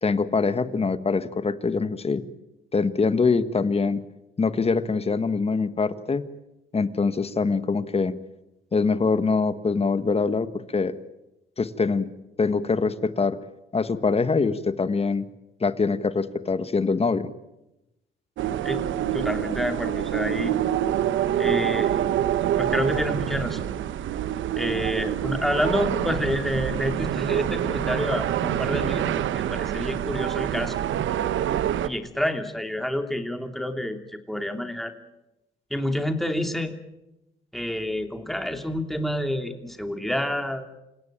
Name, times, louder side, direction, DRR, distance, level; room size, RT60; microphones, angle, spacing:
voice 1, 0.0-2.2 2.7-4.0 4.4-6.3 6.7-8.1 8.7-10.9 11.6-12.1 12.4-13.4 13.7-15.3 15.6-17.3, left 4 dB, 30° left, 12 dB, 1.6 m, -24 dB
sound 1, 18.4-31.9, right 11 dB, 75° right, 1.1 m, -26 dB
voice 2, 19.1-20.5 21.4-21.9 22.6-23.7 24.5-30.8 31.8-34.9 35.7-36.7 37.5-40.7, left 1 dB, ahead, 6 dB, 2.9 m, -28 dB
28.5 x 17.0 x 8.9 m, 0.94 s
cardioid pair, 90°, 20 cm